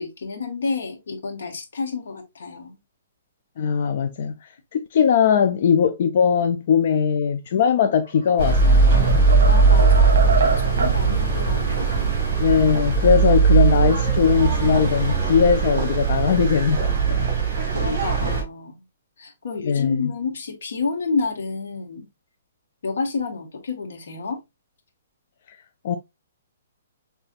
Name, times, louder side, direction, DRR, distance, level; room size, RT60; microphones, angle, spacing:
voice 1, 0.0-2.8 9.5-12.1 17.7-18.7 19.2-22.1 22.8-24.4, left 4 dB, 75° left, 1.5 m, -29 dB
voice 2, 3.6-4.3 4.7-9.2 12.4-17.3 19.6-20.1 25.8-26.0, left 7 dB, 40° left, 0.4 m, -20 dB
sound 1, 8.0-8.5 8.9-11.0, right 4 dB, 65° right, 1.1 m, -25 dB
sound 2, 8.4-18.4, right 4 dB, 40° right, 2.7 m, -19 dB
5.6 x 3.4 x 2.4 m
hypercardioid pair, 180°, 0 cm